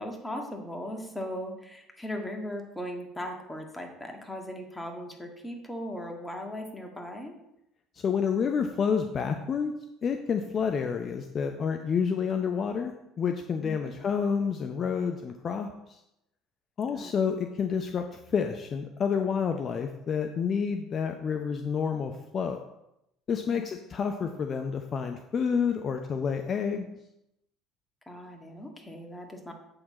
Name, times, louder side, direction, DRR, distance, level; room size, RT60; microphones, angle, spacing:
voice 1, 0.0-7.4 13.6-14.0 16.9-17.3 23.5-23.6 28.1-29.5, equal, 10° left, 2 dB, 1.8 m, -38 dB
voice 2, 8.0-9.7 10.0-15.7 16.8-22.6 23.3-26.9, left 6 dB, 40° left, 5 dB, 0.7 m, -29 dB
7.8 x 6.4 x 4.2 m, 0.85 s
figure-of-eight pair, 60°, 0 cm